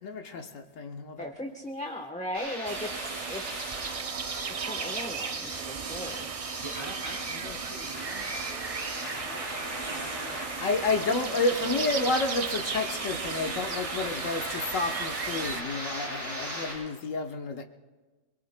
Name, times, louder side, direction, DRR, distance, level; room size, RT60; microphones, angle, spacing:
voice 1, 0.0-1.3 7.3-7.6 10.6-17.6, left 3 dB, 75° left, 4 dB, 1.4 m, -30 dB
voice 2, 1.2-3.8 4.6-6.3, left 1 dB, 5° left, 2 dB, 0.9 m, -38 dB
sound 1, 2.3-16.7, equal, 80° right, 7.6 m, -39 dB
sound 2, 2.7-15.6, right 6 dB, 55° right, 0.4 m, -36 dB
voice 3, 6.6-11.1 11.6-12.1, right 1 dB, 25° right, -3 dB, 4.6 m, -46 dB
27.0 x 22.0 x 2.2 m, 1.2 s
omnidirectional pair, 1.4 m